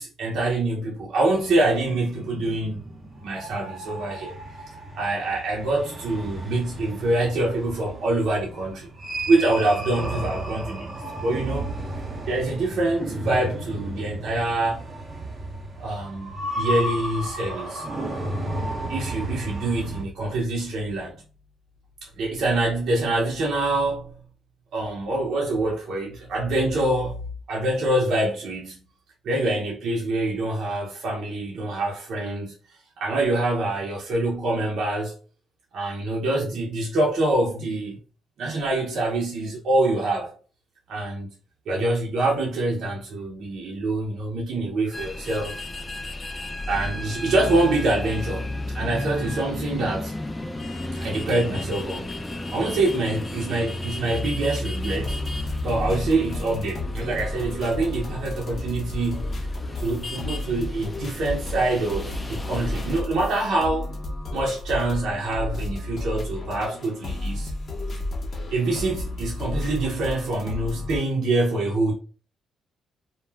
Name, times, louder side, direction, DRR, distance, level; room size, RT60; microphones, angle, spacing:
voice 1, 0.0-2.9 3.2-4.4 5.0-8.9 9.3-11.7 12.3-14.8 15.8-17.9 18.9-21.2 22.0-24.2 24.7-27.2 27.5-28.9 29.2-32.6 33.0-35.2 35.7-38.0 38.4-40.3 40.9-41.3 41.7-45.5 46.7-50.1 50.9-52.2 52.5-55.2 55.6-59.3 59.8-63.9 64.3-67.5 68.5-71.9, right 2 dB, 70° right, 0.7 m, -25 dB
sound 1, 1.3-20.0, right 1 dB, 30° right, 0.8 m, -33 dB
sound 2, 44.9-63.0, left 1 dB, 20° left, 0.5 m, -33 dB
sound 3, 54.8-71.0, left 2 dB, 45° left, 0.8 m, -32 dB
2.3 x 2.2 x 3.3 m
cardioid pair, 90°, 0 cm